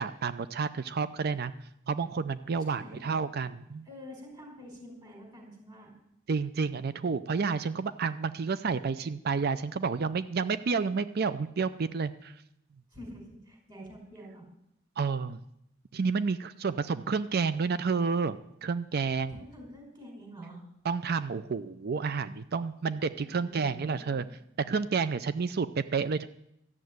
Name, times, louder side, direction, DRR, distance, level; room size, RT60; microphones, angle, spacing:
voice 1, 0.0-1.5 1.9-3.8 6.3-12.3 15.0-15.4 15.9-19.4 20.8-24.3 24.7-26.3, right 5 dB, 50° right, 14 dB, 0.5 m, -30 dB
voice 2, 2.6-3.0 3.8-5.9 12.9-14.5 19.3-20.6 23.2-24.2, equal, 20° right, 0 dB, 5.5 m, -47 dB
13.0 x 7.4 x 9.3 m, 0.79 s
head